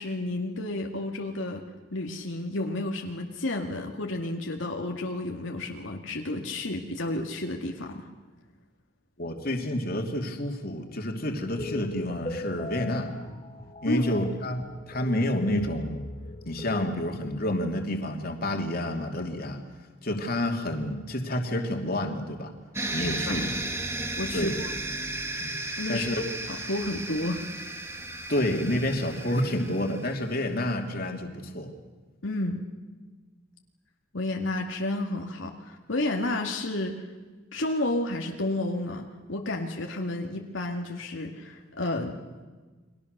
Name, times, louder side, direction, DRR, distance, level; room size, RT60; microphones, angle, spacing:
voice 1, 0.0-1.6 1.9-8.1 13.9-14.0 23.0-23.5 24.2-24.7 25.8-27.5 32.2-32.6 34.1-37.0 37.5-42.2, left 2 dB, 80° left, 1 dB, 2.1 m, -31 dB
voice 2, 9.2-13.1 13.8-16.0 16.4-19.6 20.0-22.5 22.9-23.6 24.3-24.5 25.4-25.5 25.9-26.1 28.3-31.7, left 1 dB, 50° left, 3 dB, 2.7 m, -29 dB
sound 1, 11.6-16.9, left 2 dB, 30° left, 1.4 m, -39 dB
sound 2, 22.7-30.3, right 2 dB, 15° right, 1.5 m, -34 dB
30.0 x 22.5 x 6.7 m, 1.3 s
head